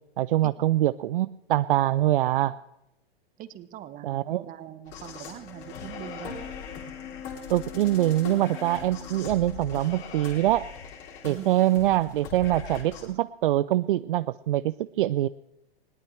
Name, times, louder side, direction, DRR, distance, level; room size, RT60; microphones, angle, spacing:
voice 1, 0.2-2.5 4.0-4.4 7.5-10.7 11.2-15.3, right 14 dB, 55° right, 14 dB, 0.5 m, -24 dB
voice 2, 3.4-6.4 11.3-11.5, right 12 dB, 25° right, 12 dB, 1.2 m, -42 dB
sound 1, 4.8-13.1, left 6 dB, 35° left, 3.5 m, -40 dB
20.5 x 18.0 x 3.3 m, 0.90 s
hypercardioid pair, 115°, 31 cm